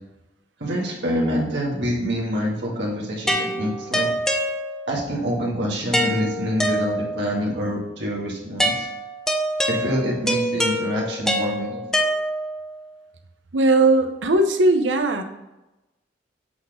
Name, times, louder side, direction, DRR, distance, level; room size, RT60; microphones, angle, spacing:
voice 1, 0.6-4.1 4.9-8.9 9.7-12.1, equal, 65° right, -3 dB, 2.0 m, -26 dB
sound 1, 3.3-5.0 5.9-7.3 8.6-12.7, equal, 5° left, 0.8 m, -25 dB
voice 2, 13.5-15.2, right 2 dB, 85° right, 7 dB, 0.8 m, -18 dB
8.2 x 4.2 x 5.1 m, 0.99 s
head